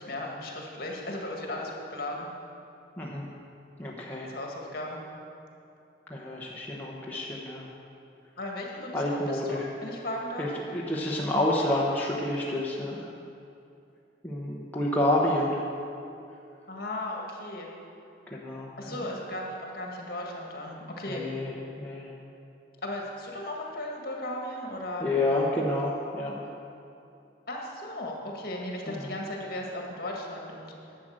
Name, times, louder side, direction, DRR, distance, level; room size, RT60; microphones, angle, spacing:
voice 1, 0.0-2.3 4.3-5.0 8.4-10.5 16.7-17.7 18.8-21.3 22.8-25.1 27.5-30.7, left 1 dB, 55° left, -1 dB, 1.8 m, -36 dB
voice 2, 3.8-4.3 6.1-7.7 8.9-9.7 10.4-13.1 14.2-15.6 18.3-19.0 21.1-21.5 21.8-22.1 25.0-26.3 28.9-29.0, left 1 dB, 10° left, -4 dB, 0.9 m, -29 dB
11.5 x 7.6 x 6.5 m, 2.6 s
head